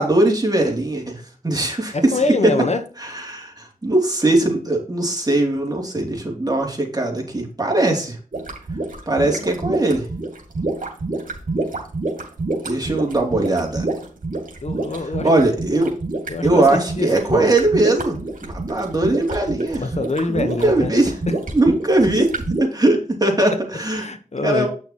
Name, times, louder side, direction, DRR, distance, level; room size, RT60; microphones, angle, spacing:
voice 1, 0.0-2.1 2.4-2.5 3.0-8.2 9.1-10.1 12.6-13.8 15.2-15.9 16.4-18.2 18.4-19.8 20.3-21.1 21.5-22.3 22.6-24.1 24.4-24.7, right 2 dB, 25° right, 2.9 m, -20 dB
voice 2, 1.9-2.8 9.4-9.6 14.6-15.3 16.3-17.5 19.8-20.9 21.3-21.4 23.9-24.7, left 3 dB, 50° left, 1.1 m, -24 dB
sound 1, 8.3-22.6, right 2 dB, 70° right, 2.5 m, -27 dB
9.0 x 6.4 x 3.0 m
cardioid pair, 40°, 14 cm